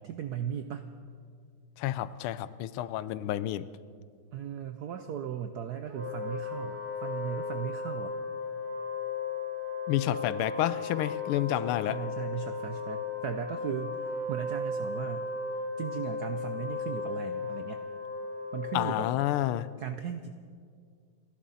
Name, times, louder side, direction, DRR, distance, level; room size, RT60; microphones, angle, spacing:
voice 1, 0.0-0.8 4.3-8.2 11.9-15.3 15.8-17.8 18.5-19.1 19.8-20.4, right 9 dB, 80° right, 8 dB, 0.8 m, -37 dB
voice 2, 1.8-3.7 9.9-12.0 18.7-19.7, left 13 dB, 80° left, 16 dB, 1.4 m, -30 dB
Wind instrument woodwind instrument, 5.9-19.3, left 4 dB, 45° right, 2.9 m, -36 dB
29.5 x 11.5 x 4.1 m, 2.2 s
omnidirectional pair, 2.4 m